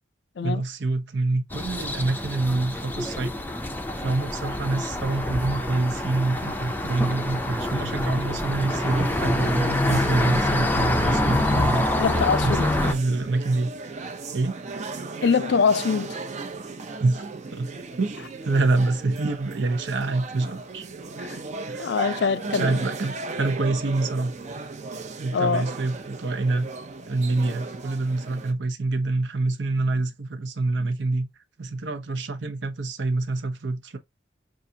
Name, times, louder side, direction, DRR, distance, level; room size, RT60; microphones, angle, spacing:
voice 1, 0.4-3.3 4.0-11.9 12.4-13.7 14.3-14.6 17.0-17.2 17.5-17.7 18.0-20.9 21.7-21.9 22.5-24.3 25.2-26.7 27.1-31.3 31.6-34.0, right 2 dB, 70° right, 0.7 m, -26 dB
sound 1, 1.5-12.9, left 1 dB, 10° left, 0.5 m, -26 dB
sound 2, 8.7-28.5, right 3 dB, 40° right, 0.5 m, -36 dB
voice 2, 12.0-12.7 15.2-16.2 21.2-21.4 21.8-22.8 25.3-25.7, left 5 dB, 65° left, 0.4 m, -23 dB
5.4 x 2.5 x 2.7 m
head